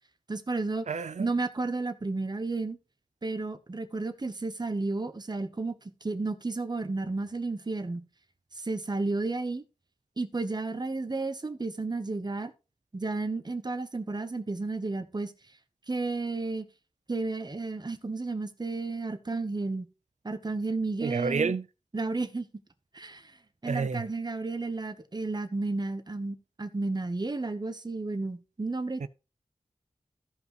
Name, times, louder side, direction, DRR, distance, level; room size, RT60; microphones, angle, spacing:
voice 1, 0.3-0.9 1.2-2.8 3.2-5.8 6.0-8.0 8.6-9.6 10.2-12.5 12.9-15.3 15.9-16.7 17.1-19.9 20.2-21.5 21.9-22.5 22.9-23.3 23.6-29.1, right 3 dB, 35° right, 1.1 m, -32 dB
voice 2, 0.9-1.3 21.0-21.6 23.7-24.1 29.0-29.1, right 5 dB, 80° right, 0.6 m, -30 dB
14.5 x 5.5 x 3.1 m
wide cardioid pair, 55°, 12 cm